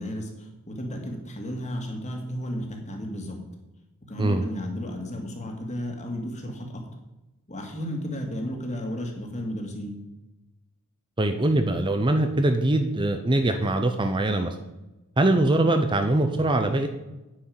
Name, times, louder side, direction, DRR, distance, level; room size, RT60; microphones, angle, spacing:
voice 1, 0.0-3.4 4.1-6.7 7.5-10.0, equal, 30° left, 2 dB, 2.1 m, -33 dB
voice 2, 11.2-14.6 15.2-16.9, right 2 dB, 20° right, 7 dB, 0.7 m, -22 dB
9.7 x 6.2 x 8.8 m, 1.0 s
head